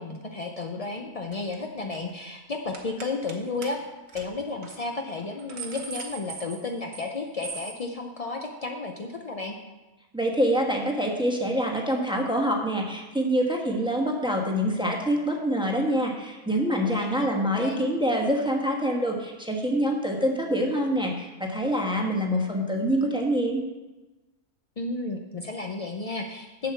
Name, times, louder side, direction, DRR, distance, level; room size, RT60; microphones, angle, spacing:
voice 1, 0.0-3.8 4.1-9.6 16.9-17.3 17.5-17.8 24.8-26.7, left 3 dB, 70° left, 2 dB, 0.3 m, -33 dB
sound 1, 1.3-1.5 1.8-2.1 2.7-3.4 3.6-3.7 4.1-4.2 4.6-4.8 5.2-7.1 7.4-7.8, right 4 dB, 50° right, 1.2 m, -39 dB
voice 2, 10.1-23.6, equal, 5° right, 0 dB, 1.1 m, -25 dB
7.7 x 7.3 x 5.8 m, 1.1 s
omnidirectional pair, 1.6 m